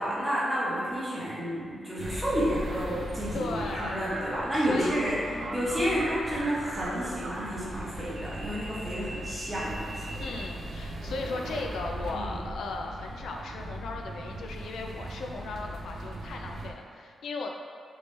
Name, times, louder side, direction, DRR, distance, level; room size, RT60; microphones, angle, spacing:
voice 1, 0.0-5.2 5.5-10.3 12.1-12.4, equal, 10° right, -9 dB, 1.0 m, -30 dB
sound 1, 2.0-16.7, right 1 dB, 70° right, 0.4 m, -38 dB
voice 2, 3.3-4.0 4.5-5.0 5.3-5.8 10.2-17.5, left 3 dB, 85° left, 2 dB, 0.3 m, -37 dB
3.0 x 2.9 x 3.2 m, 2.1 s
cardioid pair, 95°, 0 cm